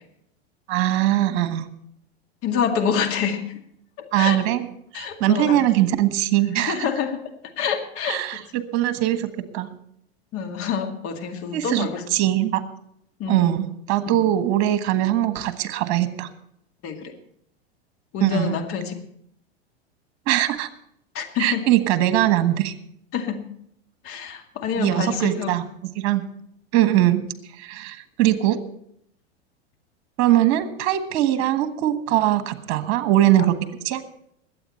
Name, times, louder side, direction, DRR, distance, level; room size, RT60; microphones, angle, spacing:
voice 1, 0.7-1.7 4.1-4.7 4.9-6.9 8.0-9.7 11.5-12.6 13.3-16.3 18.2-18.5 20.3-20.7 21.4-22.7 24.7-25.6 25.9-26.2 26.7-27.3 27.6-28.6 30.2-33.6 33.8-34.0, right 13 dB, 50° right, 11 dB, 1.4 m, -21 dB
voice 2, 2.4-3.4 4.0-4.4 4.9-5.7 6.6-7.2 7.6-8.4 10.3-12.0 13.2-13.5 14.0-14.2 16.8-17.1 18.1-18.9 21.1-21.6 23.1-23.5 24.0-25.5, left 7 dB, 45° left, 4 dB, 2.2 m, -27 dB
21.5 x 8.5 x 4.4 m, 0.71 s
hypercardioid pair, 95°, 33 cm